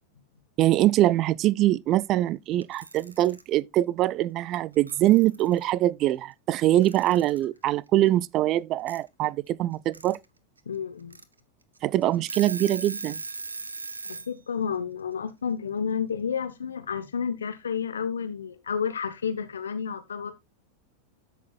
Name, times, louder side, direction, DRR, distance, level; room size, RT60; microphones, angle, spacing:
voice 1, 0.6-10.2 11.8-13.2, right 14 dB, 40° right, 0.5 m, -23 dB
Alarm / Clock, 2.6-3.4 4.6-4.7 4.9-5.7 6.8-7.4 8.9-9.0 9.7-10.2 10.6-10.7 11.1-11.2 11.8-11.9 12.1-14.3, right 3 dB, 85° right, 1.1 m, -38 dB
voice 2, 10.7-11.2 14.1-20.3, left 7 dB, 75° left, 1.1 m, -31 dB
13.5 x 6.7 x 2.3 m
figure-of-eight pair, 90°, 0 cm